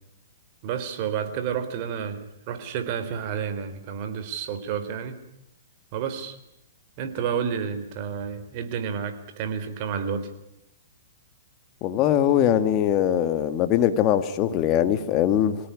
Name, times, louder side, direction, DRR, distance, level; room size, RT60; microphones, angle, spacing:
voice 1, 0.6-5.2 5.9-6.4 7.0-10.3, right 7 dB, 40° right, 9 dB, 3.8 m, -30 dB
voice 2, 11.8-15.6, left 10 dB, 30° left, 10 dB, 2.1 m, -21 dB
26.0 x 17.5 x 9.9 m, 0.88 s
hypercardioid pair, 150°, 0 cm